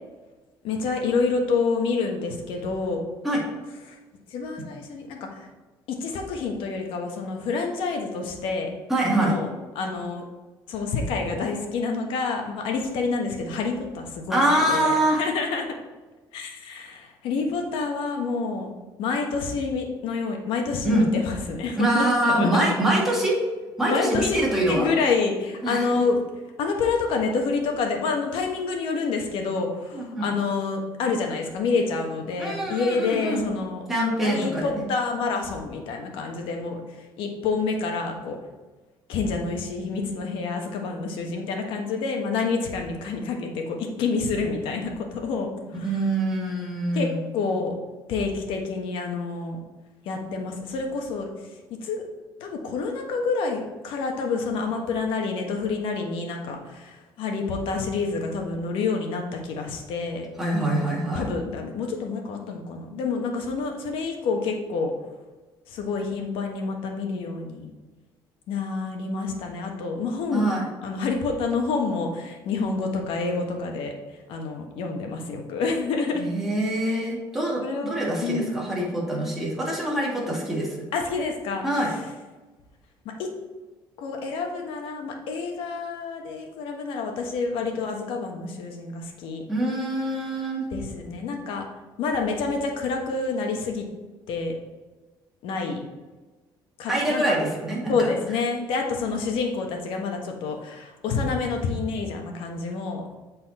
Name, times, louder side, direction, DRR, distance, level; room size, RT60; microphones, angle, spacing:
voice 1, 0.6-3.0 3.9-4.0 4.3-5.5 5.9-8.7 9.2-9.5 9.7-10.2 10.7-15.8 16.3-18.7 19.0-22.7 23.9-24.4 24.7-26.2 26.6-33.8 34.2-38.4 39.1-46.0 46.9-47.8 48.1-49.6 50.0-52.0 52.4-60.3 61.1-64.9 65.7-67.7 68.5-70.4 70.8-73.9 74.3-76.2 77.6-77.9 78.2-78.5 80.9-81.6 83.0-83.3 84.0-89.4 90.7-91.7 92.0-93.8 94.3-94.5 95.4-95.8 96.8-97.3 97.9-103.1, left 4 dB, 80° left, 2 dB, 1.3 m, -28 dB
voice 2, 8.9-9.3 14.3-15.2 20.8-21.1 21.8-23.4 23.8-24.9 25.6-25.9 29.9-30.3 32.4-33.4 33.9-34.8 45.8-47.2 60.4-61.2 70.3-70.7 76.2-80.8 81.6-81.9 89.5-90.6 96.9-98.1, right 1 dB, 5° right, -5 dB, 2.2 m, -24 dB
8.0 x 4.2 x 4.2 m, 1.2 s
cardioid pair, 125°, 9 cm